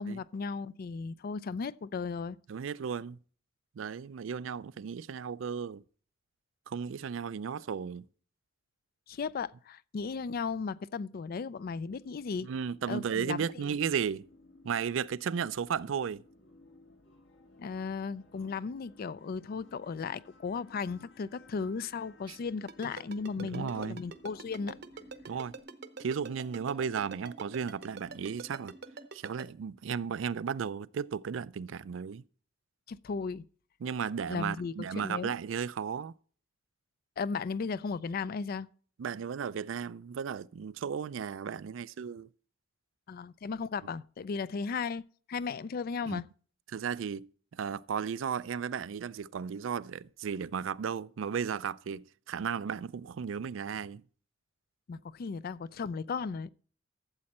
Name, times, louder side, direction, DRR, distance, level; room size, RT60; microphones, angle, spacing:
voice 1, 0.0-2.4 9.1-12.5 12.9-13.4 17.6-24.8 32.9-33.5 34.3-35.3 37.2-38.7 43.1-45.0 45.3-46.3 54.9-56.5, left 5 dB, 50° left, 0.4 m, -36 dB
voice 2, 2.5-3.2 3.8-5.8 6.7-8.1 12.4-14.3 14.6-16.2 22.3-22.4 23.4-24.0 25.3-25.5 26.0-28.7 29.1-32.2 33.8-36.1 39.0-42.3 46.1-46.2 46.7-54.0, right 7 dB, 80° right, 0.4 m, -35 dB
sound 1, 11.9-25.6, left 2 dB, 65° left, 1.7 m, -59 dB
Ringtone, 22.7-29.4, right 4 dB, 60° right, 0.8 m, -44 dB
sound 2, 24.1-29.1, right 1 dB, 20° right, 0.6 m, -54 dB
13.0 x 7.6 x 4.2 m
head